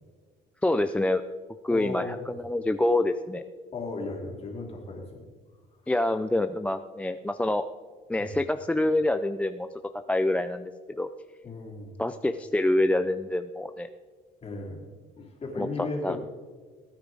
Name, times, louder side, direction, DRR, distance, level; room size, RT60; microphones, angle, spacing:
voice 1, 0.6-1.2 1.6-3.4 5.9-7.7 8.1-9.7 9.9-11.1 12.0-13.9 15.6-16.2, left 1 dB, 5° left, 9 dB, 0.3 m, -26 dB
voice 2, 1.7-2.3 3.7-5.3 8.2-8.3 11.4-12.0 14.4-14.9 15.2-16.2, left 3 dB, 35° left, 0 dB, 3.0 m, -36 dB
17.0 x 9.4 x 3.8 m, 1.5 s
cardioid pair, 110°, 17 cm